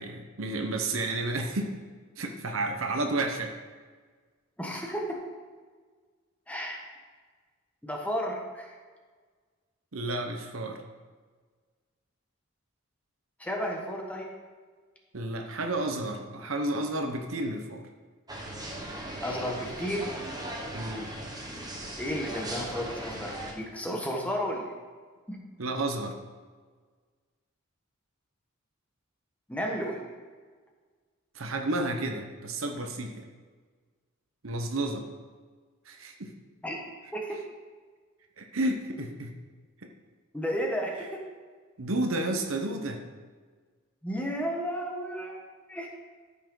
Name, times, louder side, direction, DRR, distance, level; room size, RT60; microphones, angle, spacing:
voice 1, 0.0-1.7 2.2-3.6 9.9-10.8 15.1-17.8 20.7-21.1 25.6-26.2 31.3-33.2 34.4-35.0 35.9-36.3 38.4-39.3 39.8-39.9 41.8-43.0, right 2 dB, 75° right, 4 dB, 1.0 m, -31 dB
voice 2, 4.6-5.2 6.5-6.9 7.8-8.7 13.4-14.3 19.2-20.1 22.0-24.7 25.3-25.4 29.5-30.0 36.6-36.8 37.1-37.4 40.3-41.2 44.0-45.4 45.7-45.9, equal, 5° left, 0 dB, 1.3 m, -33 dB
sound 1, 18.3-23.5, right 1 dB, 20° right, 1.3 m, -38 dB
13.5 x 5.9 x 3.9 m, 1.5 s
head